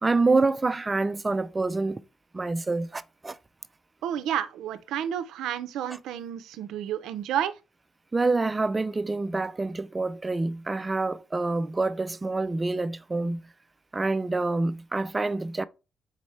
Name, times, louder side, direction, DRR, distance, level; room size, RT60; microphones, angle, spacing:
voice 1, 0.0-2.0 2.3-3.4 8.1-13.4 13.9-15.6, right 3 dB, 20° right, 0.3 m, -27 dB
voice 2, 4.0-7.6, right 10 dB, 85° right, 0.5 m, -30 dB
4.2 x 4.0 x 3.1 m
cardioid pair, 90°, 0 cm